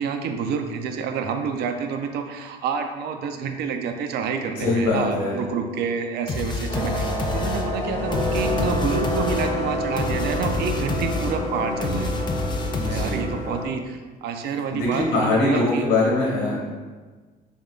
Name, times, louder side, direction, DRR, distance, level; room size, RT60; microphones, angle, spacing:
voice 1, 0.0-12.3 12.8-15.9, right 6 dB, 75° right, 6 dB, 0.5 m, -28 dB
voice 2, 4.6-5.4 12.7-13.2 14.7-16.7, left 2 dB, 75° left, -5 dB, 1.3 m, -22 dB
sound 1, 6.3-13.5, left 2 dB, 25° left, 0.4 m, -29 dB
sound 2, 6.7-13.7, left 1 dB, 45° left, 1.4 m, -28 dB
5.0 x 3.4 x 2.4 m, 1.3 s
cardioid pair, 110°, 17 cm